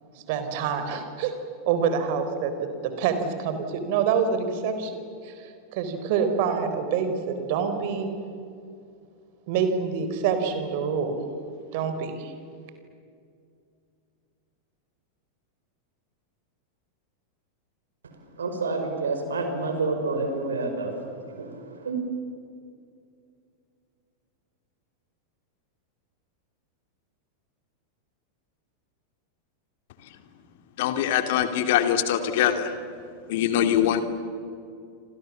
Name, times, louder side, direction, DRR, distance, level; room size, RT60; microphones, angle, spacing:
voice 1, 0.3-1.3 1.7-2.5 2.8-8.1 9.5-11.2 11.7-12.3, right 6 dB, 50° right, 8 dB, 4.1 m, -26 dB
voice 2, 18.4-20.9 21.8-22.0, right 3 dB, 70° right, 5 dB, 5.3 m, -28 dB
voice 3, 30.8-32.7 33.3-34.0, left 10 dB, 50° left, 8 dB, 2.4 m, -23 dB
29.0 x 27.0 x 7.4 m, 2.4 s
figure-of-eight pair, 90°, 0 cm